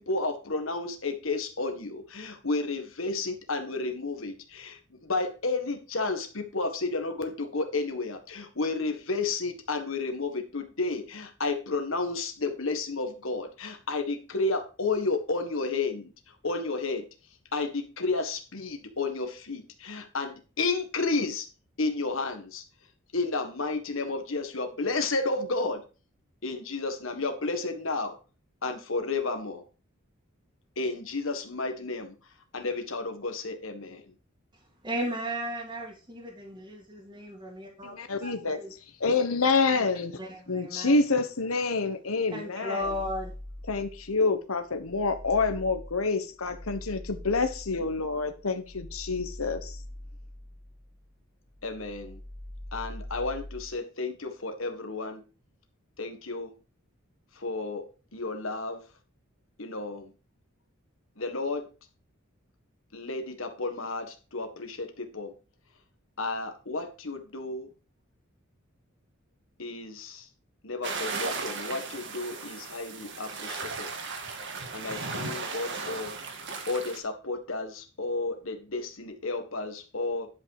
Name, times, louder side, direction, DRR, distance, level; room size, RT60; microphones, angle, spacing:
voice 1, 0.0-17.1 17.5-21.5 21.8-22.6 23.1-25.8 26.4-28.2 28.6-29.6 30.8-32.1 32.5-34.0 51.6-52.2 52.7-55.2 56.0-56.5 57.3-58.8 59.6-60.1 61.2-61.7 62.9-65.3 66.2-67.7 69.6-70.3 70.6-73.9 74.7-76.2 76.7-80.3, left 3 dB, 65° left, 1.6 m, -32 dB
voice 2, 34.8-37.9 38.2-38.7 40.2-41.0 42.3-43.3, equal, 20° right, 2.1 m, -35 dB
voice 3, 38.0-38.6 39.0-40.2 40.5-43.0 43.7-49.8, left 3 dB, 90° left, 1.2 m, -27 dB
sound 1, 42.8-44.2 44.6-51.2 51.5-53.8, left 1 dB, 15° left, 0.9 m, -43 dB
sound 2, 70.8-77.0, right 4 dB, 60° right, 1.7 m, -36 dB
10.5 x 5.5 x 4.8 m
head